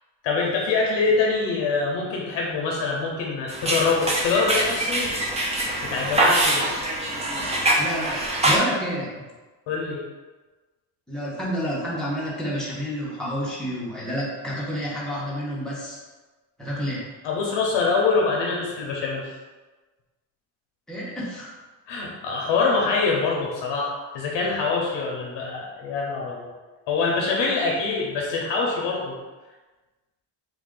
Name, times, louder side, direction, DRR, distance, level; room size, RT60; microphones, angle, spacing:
voice 1, 0.2-5.1 5.8-6.9 9.7-10.0 17.2-19.3 21.9-26.5 26.9-29.2, left 4 dB, 60° left, -2 dB, 0.7 m, -24 dB
sound 1, 3.5-8.6, right 1 dB, 15° right, 0.3 m, -24 dB
voice 2, 7.8-9.2 11.1-16.0 16.6-17.0 20.9-21.5, equal, ahead, -7 dB, 0.7 m, -29 dB
3.5 x 2.5 x 3.6 m, 1.3 s
cardioid pair, 155°, 48 cm